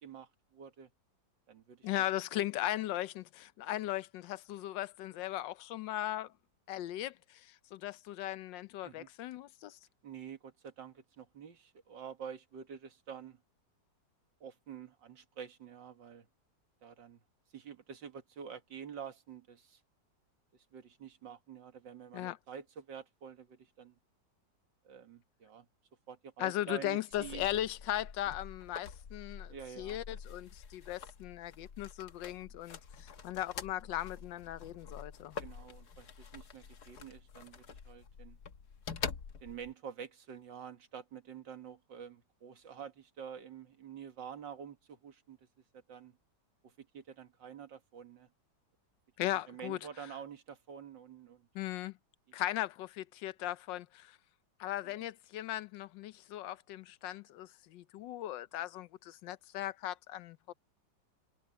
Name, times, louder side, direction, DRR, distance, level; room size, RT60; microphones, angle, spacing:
voice 1, 0.0-0.9 1.5-1.9 8.8-9.1 10.0-13.4 14.4-16.3 16.8-17.2 17.5-19.8 20.7-24.0 24.8-25.7 26.1-27.5 29.5-30.0 35.4-38.4 39.4-45.4 45.7-46.2 46.6-48.3 49.2-51.5 54.8-55.1, right 7 dB, 80° right, 2.4 m, -48 dB
voice 2, 1.8-6.3 6.7-9.8 22.1-22.4 26.4-35.4 49.2-49.8 51.5-52.0 52.3-54.2 54.6-60.5, left 13 dB, 85° left, 1.4 m, -38 dB
sound 1, 27.1-39.7, left 6 dB, 60° left, 1.8 m, -47 dB
omnidirectional pair, 1.9 m